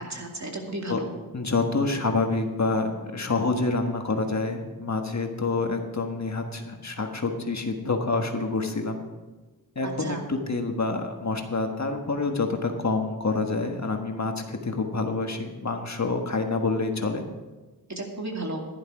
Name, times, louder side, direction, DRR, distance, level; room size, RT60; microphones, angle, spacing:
voice 1, 0.1-1.1 9.8-10.2 17.9-18.7, right 2 dB, 45° right, 1 dB, 2.3 m, -33 dB
voice 2, 1.3-9.0 9.7-17.2, left 3 dB, 45° left, 4 dB, 1.4 m, -27 dB
11.5 x 11.0 x 4.9 m, 1.2 s
cardioid pair, 60°, 38 cm